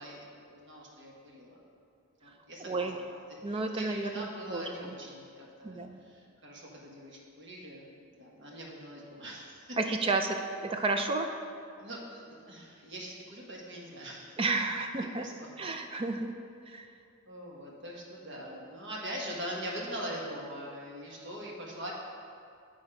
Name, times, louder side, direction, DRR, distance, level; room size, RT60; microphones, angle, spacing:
voice 1, 0.0-1.6 2.2-9.8 11.8-14.4 14.9-15.5 17.3-21.9, equal, 55° right, -3 dB, 1.4 m, -42 dB
voice 2, 2.6-3.0 3.4-4.9 5.6-6.0 9.8-11.3 14.4-15.3 15.6-16.3 16.7-16.9, right 3 dB, 25° right, 5 dB, 0.3 m, -32 dB
9.6 x 4.1 x 4.9 m, 2.4 s
head